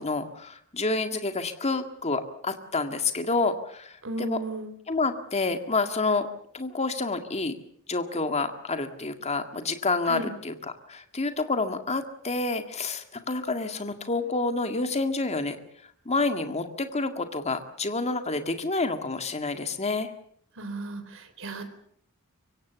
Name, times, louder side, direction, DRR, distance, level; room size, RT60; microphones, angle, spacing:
voice 1, 0.0-3.9 4.2-4.4 4.9-6.3 6.5-7.5 7.9-10.5 10.9-15.6 16.1-20.1, left 3 dB, 30° left, 7 dB, 2.0 m, -28 dB
voice 2, 4.0-4.7 10.1-10.3 20.6-21.6, right 2 dB, 60° right, 8 dB, 4.0 m, -34 dB
24.5 x 24.5 x 7.0 m, 0.64 s
head